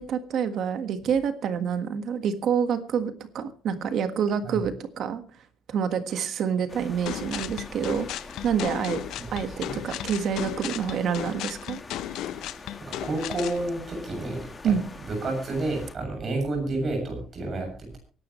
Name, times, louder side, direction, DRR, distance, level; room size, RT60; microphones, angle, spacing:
voice 1, 0.0-5.2 5.7-8.1 8.4-9.0 9.3-11.8 14.6-14.8, right 7 dB, 50° right, 9 dB, 1.6 m, -27 dB
sound 1, 6.7-15.9, left 3 dB, 15° left, 1.6 m, -44 dB
sound 2, 7.1-13.6, left 13 dB, 70° left, 0.6 m, -35 dB
voice 2, 12.8-14.7 15.1-18.0, right 2 dB, 30° right, 3 dB, 7.5 m, -30 dB
24.0 x 12.0 x 3.2 m, 0.37 s
cardioid pair, 170°, 0 cm